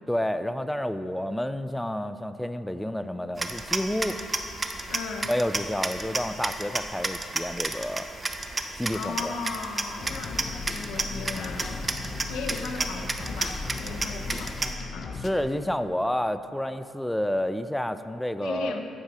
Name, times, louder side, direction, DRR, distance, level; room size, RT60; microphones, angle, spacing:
voice 1, 0.1-4.2 5.3-8.1 8.8-9.4 15.2-18.8, left 1 dB, 5° left, 11 dB, 0.4 m, -29 dB
sound 1, 3.4-14.7, right 2 dB, 25° right, 0.8 m, -32 dB
voice 2, 4.9-5.3 8.9-11.8 12.3-15.2 18.4-18.9, left 4 dB, 85° left, 5 dB, 1.0 m, -36 dB
sound 2, 10.0-15.3, left 4 dB, 50° left, 0.9 m, -37 dB
9.8 x 9.5 x 5.0 m, 3.0 s
cardioid pair, 90°, 0 cm